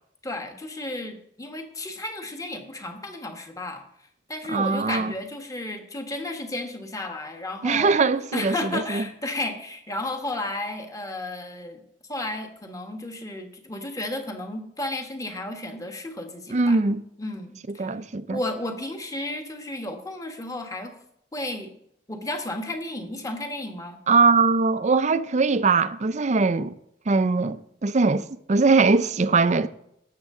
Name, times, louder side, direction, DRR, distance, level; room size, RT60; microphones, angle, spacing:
voice 1, 0.2-3.8 4.3-7.9 8.3-11.8 12.1-16.8 17.2-17.9 18.3-21.0 21.3-21.7 22.1-24.0, left 2 dB, 20° left, 1.4 m, -33 dB
voice 2, 4.5-5.1 7.6-9.0 16.5-17.0 17.8-18.4 24.1-26.7 27.1-29.7, right 4 dB, 40° right, 0.5 m, -21 dB
18.0 x 7.5 x 3.7 m
head